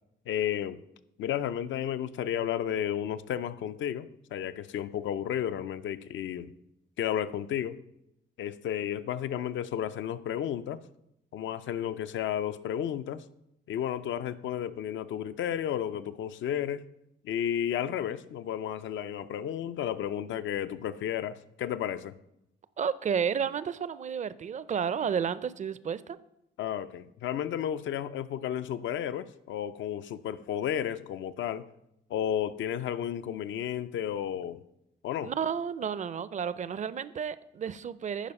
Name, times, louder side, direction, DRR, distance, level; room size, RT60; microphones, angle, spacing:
voice 1, 0.3-0.8 1.2-6.5 7.0-7.8 8.4-10.8 11.3-13.2 13.7-16.8 17.2-22.1 26.6-31.6 32.1-34.6 35.0-35.3, left 10 dB, 70° left, 12 dB, 0.6 m, -32 dB
voice 2, 22.8-26.2 35.2-38.3, right 7 dB, 35° right, 16 dB, 0.5 m, -31 dB
10.0 x 5.0 x 5.4 m, 0.81 s
cardioid pair, 90°, 20 cm